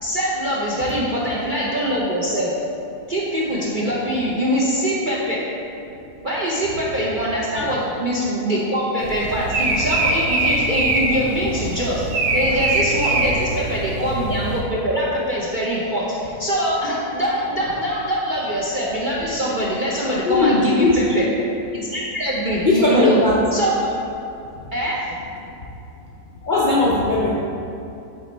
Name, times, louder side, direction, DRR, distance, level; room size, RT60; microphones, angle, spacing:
voice 1, 0.0-2.6 3.1-5.4 6.2-20.9 21.1-21.2 21.7-23.2 23.5-23.9 24.7-25.2, equal, 60° right, -6 dB, 0.5 m, -23 dB
sound 1, 9.0-14.6, right 2 dB, 80° right, 1.3 m, -23 dB
voice 2, 20.3-21.2 22.6-23.4 25.4-25.5 26.4-27.3, left 2 dB, 80° left, -5 dB, 0.4 m, -18 dB
8.3 x 3.0 x 4.3 m, 2.8 s
omnidirectional pair, 1.8 m